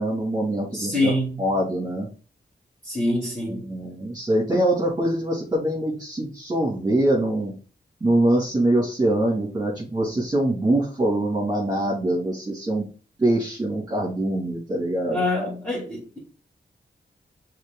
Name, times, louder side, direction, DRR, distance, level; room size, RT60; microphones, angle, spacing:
voice 1, 0.0-1.1 1.4-2.1 3.5-7.6 8.0-12.8 13.2-15.3, right 1 dB, 20° right, 2.3 m, -23 dB
voice 2, 0.7-1.4 2.8-3.6 15.1-16.2, left 1 dB, 10° left, 2.9 m, -25 dB
6.4 x 4.0 x 3.8 m
wide cardioid pair, 65°, 19 cm